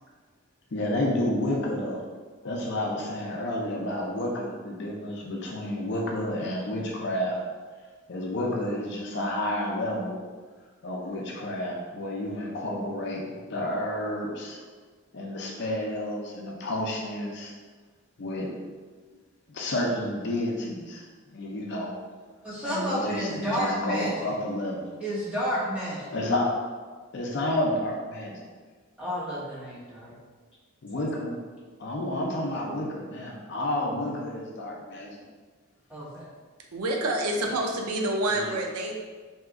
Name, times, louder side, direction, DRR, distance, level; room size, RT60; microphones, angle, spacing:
voice 1, 0.7-2.0 2.4-7.4 8.1-10.2 10.8-14.6 15.1-17.5 18.2-18.6 19.5-21.0 21.3-21.9 22.6-24.9 26.1-26.5 27.1-28.3 30.8-31.4 31.8-35.2 38.3-38.6, left 1 dB, 50° left, -1 dB, 0.4 m, -30 dB
voice 2, 22.4-24.3 25.0-26.0 29.0-30.1 35.9-36.3, equal, 5° right, -10 dB, 0.9 m, -30 dB
voice 3, 36.7-39.0, right 1 dB, 90° right, 2 dB, 0.4 m, -27 dB
2.8 x 2.3 x 3.5 m, 1.5 s
head